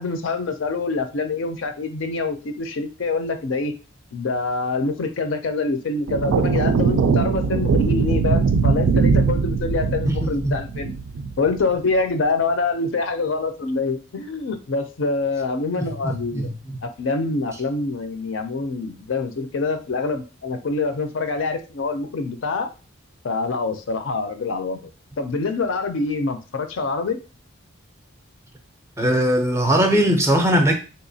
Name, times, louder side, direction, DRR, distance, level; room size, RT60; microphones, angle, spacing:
voice 1, 0.0-3.7 4.1-10.9 11.4-16.5 16.8-22.7 23.2-24.9 25.2-27.2, left 3 dB, 65° left, 0.5 m, -25 dB
sound 1, 6.1-11.7, right 5 dB, 80° right, 0.3 m, -21 dB
voice 2, 10.0-10.6 16.0-16.5 29.0-30.8, right 1 dB, 15° right, 0.5 m, -20 dB
3.6 x 2.8 x 2.7 m
head